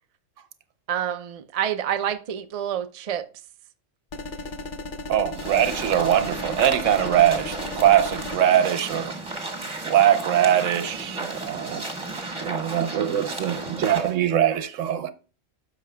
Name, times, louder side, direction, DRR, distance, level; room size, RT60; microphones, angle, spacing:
voice 1, 0.9-3.2, right 10 dB, 60° right, 0.4 m, -28 dB
sound 1, 4.1-8.4, left 2 dB, 50° left, 0.7 m, -35 dB
voice 2, 5.1-9.1 9.8-11.8 12.4-15.1, right 10 dB, 75° right, 1.1 m, -22 dB
sound 2, 5.3-14.1, right 2 dB, 25° right, 1.4 m, -33 dB
10.5 x 6.7 x 2.2 m
omnidirectional pair, 1.4 m